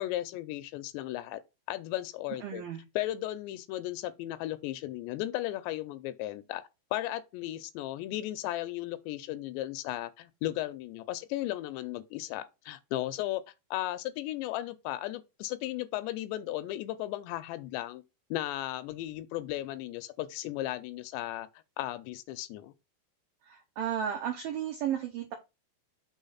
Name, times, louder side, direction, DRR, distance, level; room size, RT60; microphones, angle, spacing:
voice 1, 0.0-1.4 1.7-2.6 3.0-13.4 13.7-18.0 18.3-21.5 21.8-22.7, left 15 dB, 85° left, 2.6 m, -35 dB
voice 2, 2.4-2.8 23.4-25.3, right 9 dB, 80° right, 2.0 m, -34 dB
6.3 x 3.5 x 5.5 m
omnidirectional pair, 5.2 m